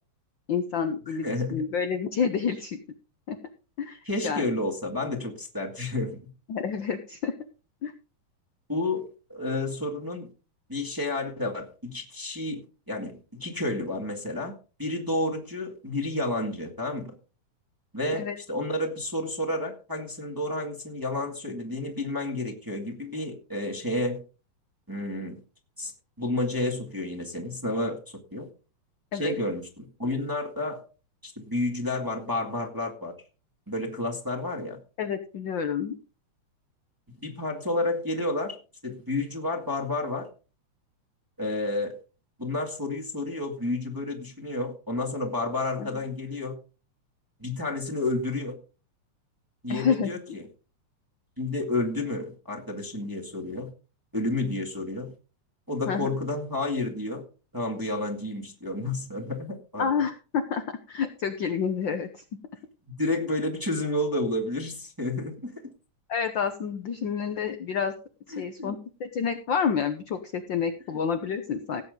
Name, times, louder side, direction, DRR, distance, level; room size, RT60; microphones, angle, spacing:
voice 1, 0.5-2.8 3.3-3.4 3.8-4.5 6.5-7.3 7.8-7.9 18.1-18.3 29.1-29.3 35.0-35.9 45.8-46.0 49.7-50.1 55.9-56.1 59.8-62.2 66.1-67.9 68.4-71.8, left 6 dB, 70° left, 7 dB, 1.1 m, -29 dB
voice 2, 1.2-1.6 4.0-6.3 8.7-10.3 10.7-14.5 14.8-17.1 17.9-24.2 24.9-25.4 25.8-25.9 26.2-28.0 28.3-28.5 29.1-30.8 31.2-33.1 33.7-34.8 37.2-38.6 38.8-40.3 41.4-41.9 42.4-46.6 47.4-48.5 49.6-50.5 51.4-53.7 54.1-55.1 55.7-57.2 57.5-59.9 62.9-65.6 68.3-68.8, left 2 dB, 10° right, -1 dB, 1.7 m, -30 dB
17.5 x 8.1 x 3.9 m, 0.35 s
omnidirectional pair, 3.4 m